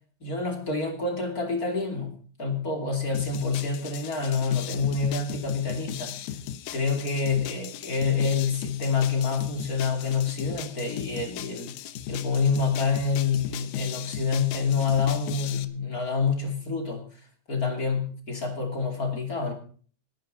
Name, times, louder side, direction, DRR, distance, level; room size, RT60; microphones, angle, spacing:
voice 1, 0.2-6.2 6.7-11.7 12.1-17.1 17.5-19.5, left 5 dB, 25° left, 3 dB, 2.9 m, -27 dB
sound 1, 3.1-15.7, left 10 dB, 70° left, 2.1 m, -37 dB
19.5 x 10.5 x 4.1 m, 0.42 s
omnidirectional pair, 4.1 m